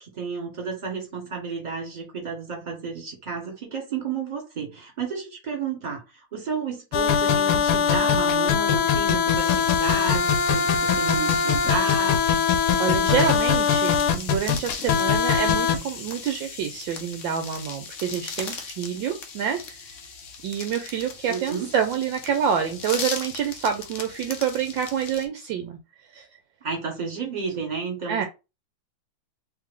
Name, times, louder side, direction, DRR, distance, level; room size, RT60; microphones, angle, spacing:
voice 1, 0.0-12.2 21.3-21.7 26.6-28.2, right 5 dB, 25° right, 1.6 m, -31 dB
sound 1, 6.9-15.8, left 7 dB, 90° left, 1.5 m, -21 dB
sound 2, 9.3-25.3, left 5 dB, 60° left, 0.8 m, -38 dB
voice 2, 12.8-19.9 20.4-25.8 26.1-26.3 28.1-28.2, right 8 dB, 70° right, 1.3 m, -27 dB
3.4 x 3.2 x 3.7 m
omnidirectional pair, 2.3 m